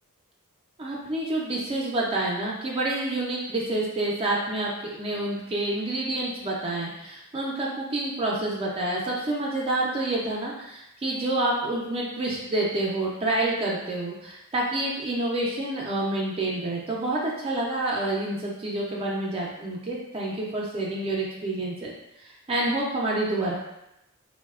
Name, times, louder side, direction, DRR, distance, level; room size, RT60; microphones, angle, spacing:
voice 1, 0.8-21.9 22.5-23.6, right 2 dB, 25° right, -4 dB, 0.3 m, -28 dB
3.0 x 2.0 x 2.3 m, 0.87 s
head